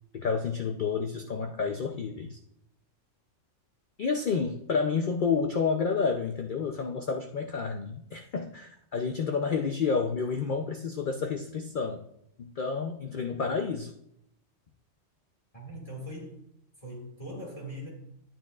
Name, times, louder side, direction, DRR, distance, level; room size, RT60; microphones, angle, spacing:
voice 1, 0.1-2.4 4.0-12.0 12.4-13.9, left 5 dB, 50° left, 5 dB, 0.7 m, -30 dB
voice 2, 15.5-16.5 16.8-17.9, equal, 30° left, -3 dB, 2.2 m, -41 dB
12.0 x 8.9 x 2.4 m, 0.76 s
omnidirectional pair, 1.3 m